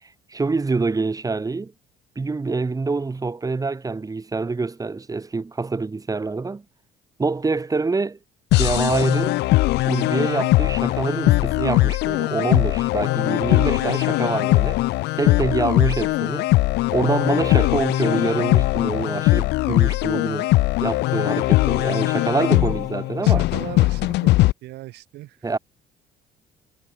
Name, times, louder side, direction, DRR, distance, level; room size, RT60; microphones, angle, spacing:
voice 1, 0.0-1.7 2.2-6.6 7.2-8.2 8.5-9.4 9.8-14.8 15.2-16.5 16.9-20.5 20.8-23.4 25.4-25.6, right 3 dB, 20° right, 5.7 m, -25 dB
sound 1, 8.5-24.5, left 19 dB, 85° left, 1.6 m, -20 dB
voice 2, 13.5-14.6 23.2-25.6, right 17 dB, 80° right, 6.1 m, -39 dB
cardioid pair, 110°, 17 cm